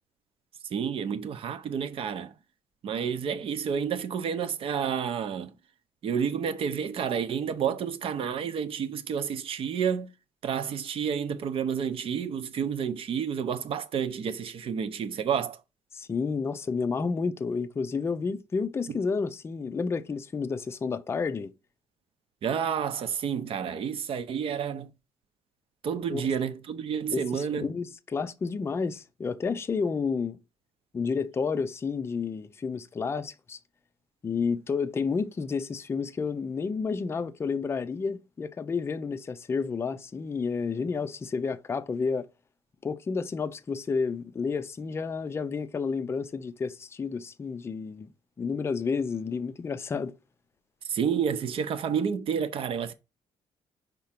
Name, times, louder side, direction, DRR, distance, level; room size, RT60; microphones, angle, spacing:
voice 1, 0.7-2.3 2.8-5.5 6.0-10.1 10.4-15.6 22.4-24.9 25.8-27.7 50.8-52.9, right 7 dB, 50° right, 0.7 m, -30 dB
voice 2, 15.9-21.5 26.1-26.2 27.1-30.4 30.9-33.6 34.2-42.3 42.8-48.1 48.4-50.1, left 5 dB, 20° left, 0.5 m, -30 dB
5.5 x 3.7 x 5.8 m
cardioid pair, 155°, 12 cm